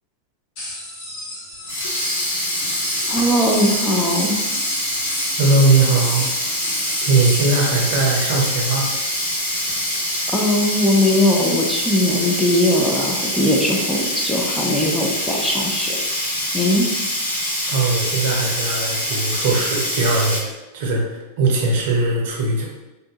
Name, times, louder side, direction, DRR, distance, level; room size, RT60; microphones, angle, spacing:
sound 1, 0.6-10.0, left 1 dB, 45° left, 1.1 m, -33 dB
Sink (filling or washing), 1.5-20.4, left 1 dB, 75° left, 0.8 m, -24 dB
voice 1, 3.1-4.4 10.3-16.0 16.5-16.9, left 1 dB, 5° left, -2 dB, 0.5 m, -20 dB
voice 2, 5.4-6.3 7.0-8.9 17.7-22.7, right 3 dB, 50° right, -1 dB, 0.7 m, -19 dB
3.6 x 2.6 x 2.4 m, 1.0 s
figure-of-eight pair, 90°, 0 cm